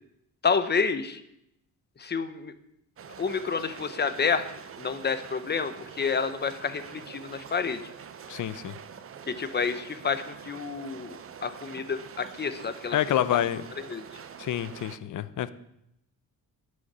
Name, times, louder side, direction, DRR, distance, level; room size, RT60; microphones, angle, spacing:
voice 1, 0.4-1.2 2.0-2.5 3.2-4.5 4.8-7.8 9.3-13.0 13.9-14.0, left 5 dB, 30° left, 11 dB, 0.8 m, -29 dB
sound 1, 3.0-15.0, right 7 dB, 40° right, 0.7 m, -45 dB
voice 2, 8.3-8.7 12.9-13.6 14.4-15.5, left 11 dB, 55° left, 15 dB, 0.6 m, -28 dB
9.7 x 6.4 x 8.8 m, 0.79 s
wide cardioid pair, 160°, 36 cm